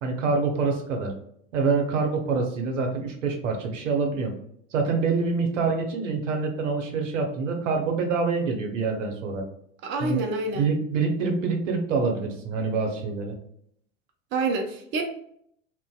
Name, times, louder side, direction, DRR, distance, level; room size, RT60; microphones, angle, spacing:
voice 1, 0.0-1.1 1.5-4.3 4.7-9.4 10.0-10.2 10.5-13.4, right 4 dB, 75° right, 3 dB, 0.7 m, -26 dB
voice 2, 9.8-10.7 14.3-15.0, right 3 dB, 30° right, 3 dB, 0.5 m, -27 dB
2.6 x 2.1 x 2.2 m, 0.69 s
hypercardioid pair, 85°, 38 cm